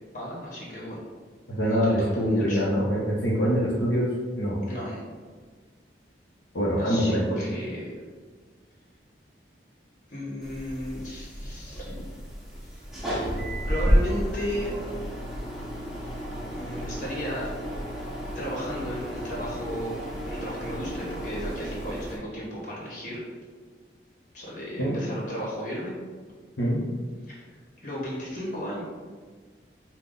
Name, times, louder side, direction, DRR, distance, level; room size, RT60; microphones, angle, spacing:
voice 1, 0.1-1.0 1.6-2.7 4.7-5.0 6.8-7.9 10.1-12.1 13.0-13.1 13.7-14.7 16.5-17.5 18.3-20.0 20.2-23.2 24.3-25.9 27.3-28.8, equal, 45° left, -5 dB, 1.5 m, -35 dB
voice 2, 1.5-4.1 4.3-4.6 6.5-7.4 24.8-24.9 26.6-26.8, equal, 85° left, -5 dB, 0.9 m, -24 dB
sound 1, 10.4-22.2, equal, ahead, 0.8 m, -31 dB
5.8 x 2.3 x 3.8 m, 1.5 s
head